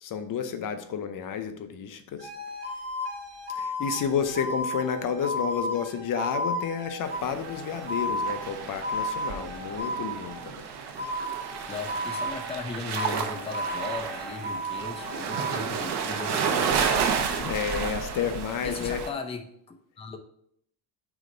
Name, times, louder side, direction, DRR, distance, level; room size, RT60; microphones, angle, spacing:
voice 1, 0.0-2.3 3.6-10.7 17.4-19.0, left 7 dB, 55° left, 9 dB, 0.7 m, -31 dB
sound 1, 2.2-10.5 11.0-12.7 12.9-15.6, equal, 40° right, 2.0 m, -34 dB
sound 2, 7.0-19.1, right 6 dB, 85° right, 0.9 m, -31 dB
voice 2, 11.7-17.0 18.6-20.2, left 4 dB, 15° left, 5 dB, 0.5 m, -37 dB
5.0 x 3.8 x 5.1 m, 0.69 s
cardioid pair, 125°, 39 cm